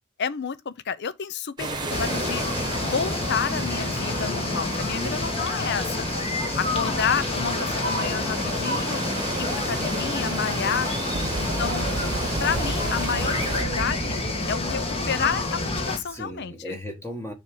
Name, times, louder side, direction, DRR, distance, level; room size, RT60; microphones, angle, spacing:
voice 1, 0.2-2.4 2.8-6.1 6.6-9.0 9.4-10.9 11.6-11.9 12.4-14.2 14.5-14.8 15.1-16.8, left 6 dB, 55° left, 0.6 m, -30 dB
sound 1, 1.6-13.6, right 3 dB, 20° right, 1.2 m, -33 dB
voice 2, 1.7-2.4 4.9-5.5 6.8-7.0 11.1-11.8 16.0-17.3, equal, 10° left, 1.3 m, -38 dB
sound 2, 1.9-16.0, left 2 dB, 30° left, 1.4 m, -28 dB
Fowl, 11.1-16.4, right 3 dB, 40° right, 0.5 m, -33 dB
6.8 x 3.5 x 6.2 m
head